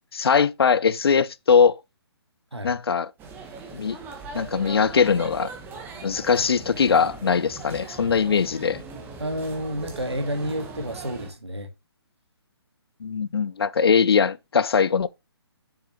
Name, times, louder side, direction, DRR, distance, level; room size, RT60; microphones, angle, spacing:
voice 1, 0.1-1.8 2.6-3.1 3.7-4.0 4.3-5.5 6.0-8.8 13.0-15.1, left 6 dB, 65° left, 0.5 m, -21 dB
sound 1, 3.2-11.3, right 4 dB, 15° right, 1.4 m, -40 dB
voice 2, 9.2-11.7, equal, 90° right, 1.9 m, -30 dB
7.0 x 6.8 x 3.1 m
figure-of-eight pair, 140°, 14 cm